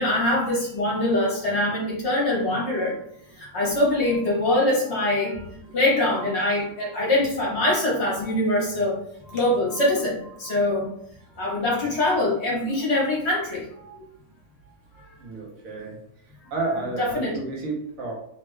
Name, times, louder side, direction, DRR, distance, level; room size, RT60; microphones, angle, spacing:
voice 1, 0.0-2.9 3.3-5.4 5.7-9.0 9.2-10.9 11.4-13.9 15.0-15.1 17.0-17.4, left 1 dB, 50° left, -4 dB, 1.0 m, -23 dB
voice 2, 15.2-16.0 16.5-18.1, right 2 dB, 70° right, -1 dB, 1.1 m, -31 dB
3.1 x 2.1 x 3.1 m, 0.74 s
omnidirectional pair, 1.6 m